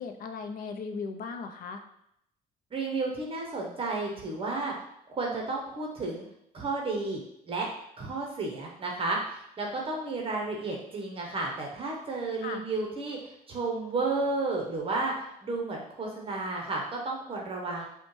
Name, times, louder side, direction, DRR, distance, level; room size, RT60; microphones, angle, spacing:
voice 1, 0.0-1.8 12.4-12.6, left 5 dB, 60° left, 6 dB, 0.5 m, -37 dB
voice 2, 2.7-4.7 5.1-6.2 6.5-7.2 7.5-7.7 8.0-17.9, right 3 dB, 35° right, -1 dB, 0.8 m, -32 dB
5.1 x 2.2 x 3.1 m, 0.76 s
cardioid pair, 110°, 17 cm